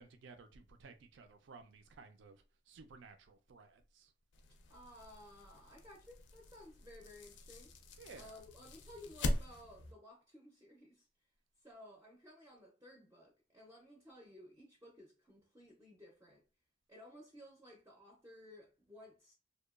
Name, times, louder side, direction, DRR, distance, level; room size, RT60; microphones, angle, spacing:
voice 1, 0.0-4.1 8.0-8.4, right 4 dB, 75° right, 0.4 m, -56 dB
sound 1, 4.3-9.9, left 1 dB, 75° left, 0.4 m, -43 dB
voice 2, 4.7-7.7 8.2-11.1 11.6-16.4 16.9-19.3, left 1 dB, 15° right, 0.4 m, -56 dB
2.8 x 2.2 x 2.3 m
head